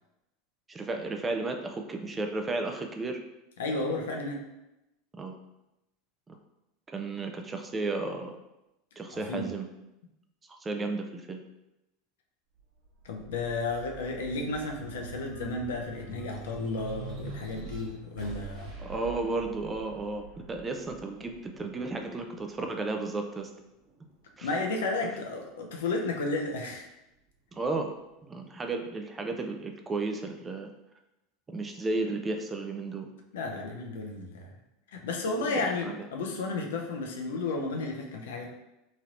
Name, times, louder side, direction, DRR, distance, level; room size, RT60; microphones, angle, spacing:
voice 1, 0.7-3.2 5.1-5.3 6.3-6.4 6.9-8.4 9.0-9.7 10.6-11.4 18.8-23.5 24.4-24.5 27.5-27.9 28.2-30.7 31.5-33.1 35.2-36.0, right 3 dB, 20° right, 4 dB, 0.4 m, -33 dB
voice 2, 3.6-4.4 9.1-9.5 13.0-18.7 24.4-26.9 33.3-34.5 34.9-38.5, left 3 dB, 75° left, 1 dB, 0.5 m, -33 dB
sound 1, 12.6-23.4 23.9-25.0, right 4 dB, 50° right, 0.8 m, -45 dB
3.0 x 2.8 x 2.5 m, 0.93 s
hypercardioid pair, 85°, 0 cm